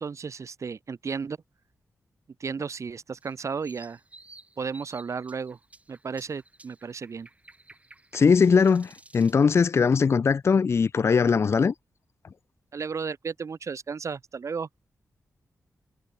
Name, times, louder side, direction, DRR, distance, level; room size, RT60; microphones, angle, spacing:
voice 1, 0.0-1.4 2.4-4.0 4.6-5.6 5.9-7.3 12.7-14.7, right 5 dB, 55° right, 1.7 m, -34 dB
sound 1, 3.2-9.4, right 2 dB, 25° right, 2.1 m, -53 dB
voice 2, 8.1-11.7, left 5 dB, 50° left, 0.4 m, -20 dB
cardioid pair, 75°, 6 cm